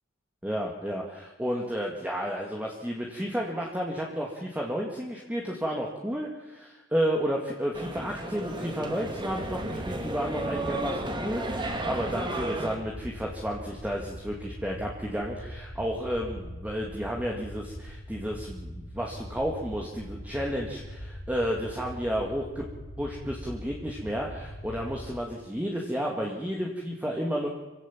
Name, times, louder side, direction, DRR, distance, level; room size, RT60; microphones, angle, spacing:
voice 1, 0.4-22.7 23.0-27.5, equal, 10° right, -1 dB, 2.2 m, -32 dB
sound 1, 7.7-12.7, right 2 dB, 25° right, 2.3 m, -33 dB
sound 2, 9.1-25.2, equal, 65° left, 5.2 m, -42 dB
27.0 x 16.5 x 7.5 m, 1.2 s
head